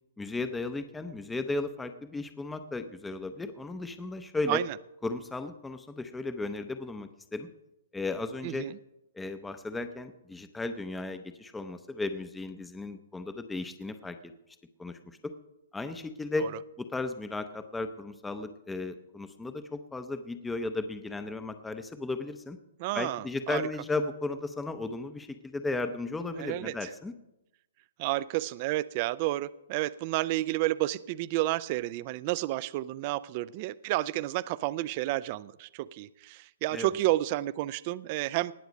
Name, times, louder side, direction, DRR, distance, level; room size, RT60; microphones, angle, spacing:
voice 1, 0.2-4.6 5.0-7.5 7.9-8.7 9.1-14.3 14.8-15.3 15.7-22.6 22.9-27.1 36.7-36.9, left 2 dB, 5° left, 8 dB, 0.6 m, -35 dB
voice 2, 8.4-8.8 22.8-23.6 26.4-26.9 28.0-38.5, right 17 dB, 40° right, 19 dB, 0.3 m, -31 dB
19.0 x 7.1 x 5.2 m, 0.90 s
hypercardioid pair, 150°, 0 cm